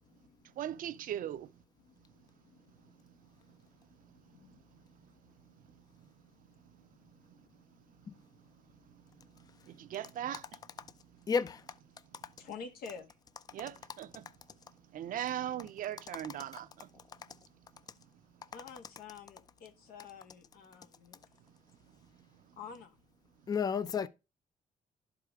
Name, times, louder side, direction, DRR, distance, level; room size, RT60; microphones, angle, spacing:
voice 1, 0.0-0.6 1.8-5.8 6.4-9.9 12.4-13.1 18.5-21.3 22.6-23.0, left 6 dB, 85° left, 1.5 m, -52 dB
voice 2, 0.6-1.5 9.7-10.4 13.5-14.2 14.9-16.9, right 11 dB, 65° right, 0.6 m, -38 dB
voice 3, 11.3-11.6 23.5-24.1, left 6 dB, 25° left, 0.4 m, -31 dB
11.5 x 4.8 x 3.6 m
cardioid pair, 135°, 15 cm